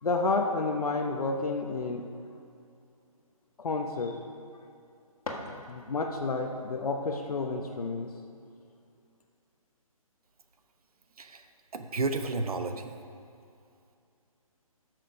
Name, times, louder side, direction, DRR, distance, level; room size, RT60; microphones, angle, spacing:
voice 1, 0.0-2.1 3.6-4.2 5.7-8.1, left 3 dB, 90° left, 2 dB, 1.0 m, -30 dB
sound 1, 5.1-6.2, left 2 dB, 75° left, 1.8 m, -42 dB
voice 2, 11.7-12.9, right 3 dB, 80° right, 7 dB, 1.0 m, -32 dB
13.0 x 6.4 x 5.2 m, 2.5 s
hypercardioid pair, 170°, 19 cm